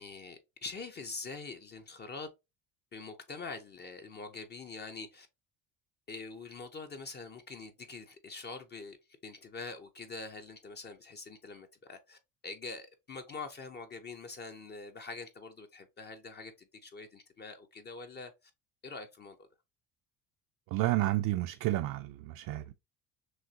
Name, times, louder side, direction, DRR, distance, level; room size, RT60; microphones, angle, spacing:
voice 1, 0.0-2.3 2.9-5.3 6.1-9.0 9.2-18.5 18.8-19.5, left 4 dB, 30° left, 0.6 m, -44 dB
voice 2, 20.7-22.7, right 16 dB, 60° right, 0.5 m, -31 dB
6.2 x 2.4 x 2.8 m
cardioid pair, 110°, 37 cm